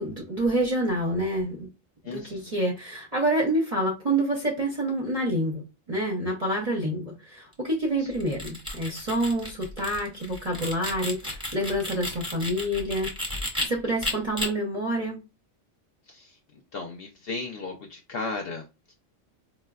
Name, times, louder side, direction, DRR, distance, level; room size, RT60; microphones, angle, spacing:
voice 1, 0.0-1.7 2.1-5.6 5.9-13.1 13.6-15.2, right 1 dB, 40° right, 0.6 m, -27 dB
voice 2, 2.0-2.5 6.8-6.9 8.0-8.2 16.1-16.4 16.7-18.9, left 3 dB, 60° left, 0.6 m, -36 dB
sound 1, 8.1-13.7 14.0-14.5, left 1 dB, 5° right, 0.7 m, -33 dB
4.3 x 2.1 x 2.3 m
omnidirectional pair, 1.4 m